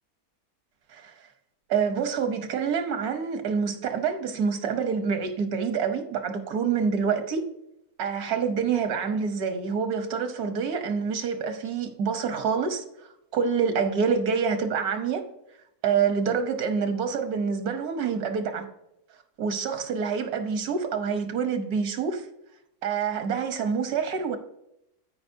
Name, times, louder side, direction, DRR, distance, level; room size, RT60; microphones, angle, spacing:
voice 1, 1.7-7.4 8.0-12.8 13.3-15.2 15.8-18.7 19.4-22.3 22.8-24.4, right 6 dB, 80° right, 1.4 m, -27 dB
13.5 x 5.0 x 2.7 m
omnidirectional pair, 1.6 m